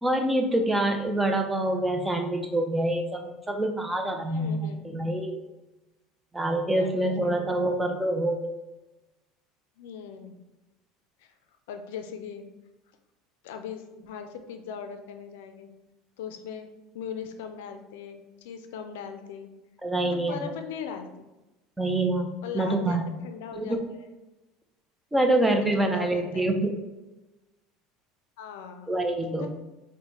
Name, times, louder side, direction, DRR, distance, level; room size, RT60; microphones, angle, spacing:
voice 1, 0.0-5.4 6.3-8.5 19.8-20.4 21.8-23.1 23.5-23.8 25.1-26.7 28.9-29.5, right 1 dB, 10° right, 4 dB, 0.5 m, -26 dB
voice 2, 4.2-4.9 6.7-7.7 9.8-10.4 11.2-11.3 11.7-12.5 13.4-15.7 16.2-19.5 20.0-21.2 22.4-24.1 25.5-26.5 28.4-28.9 29.3-29.5, left 7 dB, 85° left, 7 dB, 0.4 m, -40 dB
4.2 x 2.1 x 3.0 m, 1.1 s
supercardioid pair, 105°, 0 cm